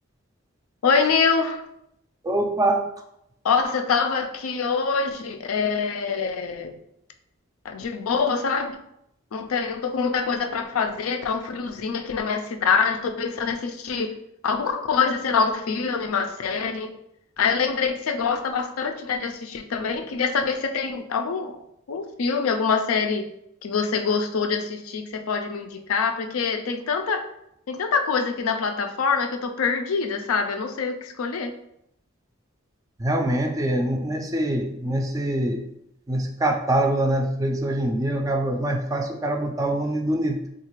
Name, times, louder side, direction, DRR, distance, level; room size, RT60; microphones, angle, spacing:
voice 1, 0.8-1.6 3.4-6.7 7.6-8.8 9.3-14.1 14.4-16.9 17.4-21.6 21.9-23.2 23.6-27.2 27.7-31.5, left 5 dB, 85° left, 5 dB, 0.4 m, -25 dB
voice 2, 2.2-2.8 33.0-35.7 36.1-40.5, right 1 dB, 15° right, 3 dB, 0.4 m, -24 dB
3.7 x 2.4 x 3.0 m, 0.78 s
head